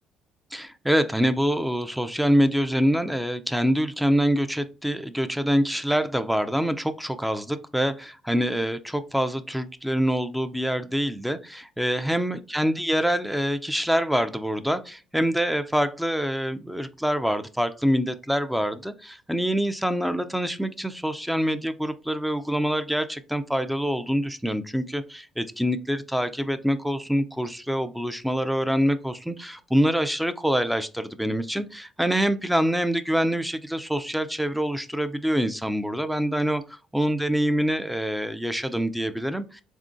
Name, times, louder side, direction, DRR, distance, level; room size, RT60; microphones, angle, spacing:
voice 1, 0.5-36.6 36.9-39.6, equal, 5° right, 11 dB, 0.4 m, -25 dB
3.6 x 3.5 x 2.5 m, 0.34 s
supercardioid pair, 65°, 0 cm